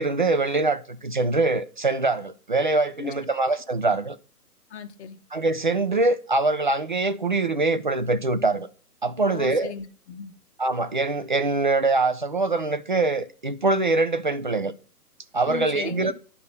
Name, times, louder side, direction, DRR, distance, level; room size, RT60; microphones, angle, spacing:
voice 1, 0.0-4.2 5.3-8.7 9.0-9.7 10.6-14.7 15.3-16.1, right 3 dB, 35° right, 0.4 m, -23 dB
voice 2, 4.7-5.2 9.3-10.3 15.5-16.1, left 6 dB, 45° left, 1.1 m, -36 dB
10.5 x 5.5 x 5.3 m
hypercardioid pair, 140°, 48 cm